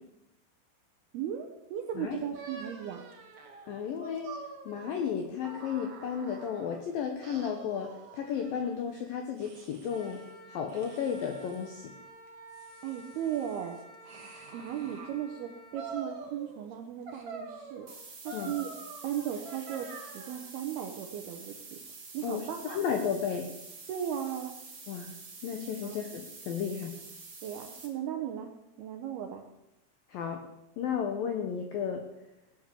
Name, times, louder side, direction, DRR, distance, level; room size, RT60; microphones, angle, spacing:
voice 1, 1.1-3.1 12.8-13.8 14.5-17.9 18.2-18.7 19.0-21.8 22.1-22.8 23.9-24.5 25.8-26.0 27.4-28.5 28.8-29.4, right 9 dB, 75° right, 4 dB, 2.3 m, -36 dB
sound 1, 2.3-6.8 7.2-8.7 9.4-10.3 10.7-11.7 12.3-15.1 15.7-16.7 17.1-20.5, right 4 dB, 60° right, 1.6 m, -46 dB
voice 2, 3.7-4.3 4.7-10.2 10.5-11.9 18.3-18.5 22.2-23.5 24.9-25.1 25.4-26.9 30.1-30.4 30.8-32.0, left 7 dB, 90° left, 5 dB, 2.0 m, -33 dB
Wind instrument woodwind instrument, 9.9-15.9, right 1 dB, 40° left, 0.8 m, -51 dB
sound 2, 17.9-27.9, right 4 dB, 40° right, 1.2 m, -47 dB
17.5 x 9.4 x 6.9 m, 0.89 s
omnidirectional pair, 5.8 m